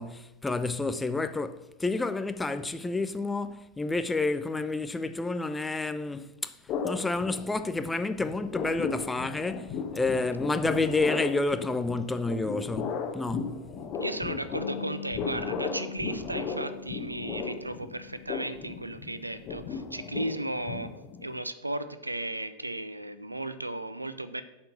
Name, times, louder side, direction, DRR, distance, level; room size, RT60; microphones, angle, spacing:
voice 1, 0.0-6.6 6.8-13.7, left 3 dB, 10° left, 0.4 m, -30 dB
sound 1, 6.7-7.9 8.2-21.3, left 5 dB, 35° left, 1.0 m, -36 dB
voice 2, 14.0-20.9 21.2-24.4, right 1 dB, 85° right, 0.5 m, -35 dB
Bass guitar, 14.6-20.8, left 9 dB, 80° left, 0.8 m, -45 dB
7.7 x 4.4 x 6.7 m
figure-of-eight pair, 90°, 0 cm